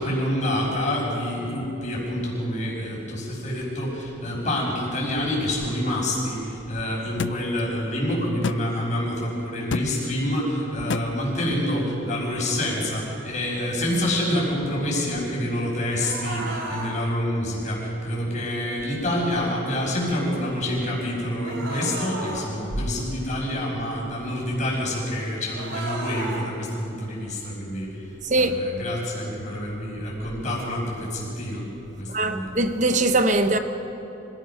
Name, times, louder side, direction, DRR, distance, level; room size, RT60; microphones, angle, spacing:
voice 1, 0.0-28.1 28.3-31.7 32.0-32.5, left 1 dB, 45° left, 6.1 m, -27 dB
sound 1, 7.2-7.4 8.4-8.6 9.7-9.9 10.9-11.1, left 4 dB, 90° left, 0.5 m, -26 dB
sound 2, 16.0-17.0 21.4-22.5 25.5-26.5, right 2 dB, 75° right, 3.1 m, -33 dB
voice 2, 32.1-33.6, right 2 dB, 45° right, 1.1 m, -21 dB
26.0 x 17.0 x 5.9 m
head